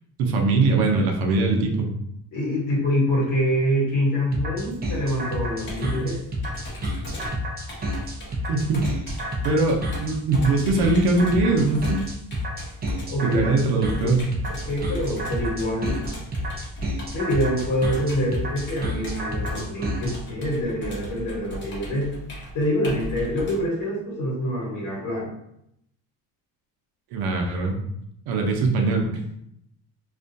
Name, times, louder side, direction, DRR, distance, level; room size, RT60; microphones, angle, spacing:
voice 1, 0.2-1.9 8.5-8.9 9.4-12.0 13.2-14.3 27.1-27.8 28.3-29.0, right 3 dB, 85° right, 2 dB, 0.6 m, -21 dB
voice 2, 2.3-6.2 13.1-13.4 13.8-14.1 14.5-16.0 17.1-22.1 22.5-25.3, equal, 60° left, -3 dB, 1.2 m, -25 dB
sound 1, 4.3-20.2, equal, 25° right, 0.5 m, -29 dB
Computer keyboard, 4.7-23.6, right 1 dB, 30° left, 0.8 m, -37 dB
2.4 x 2.2 x 2.6 m, 0.76 s
cardioid pair, 125°, 37 cm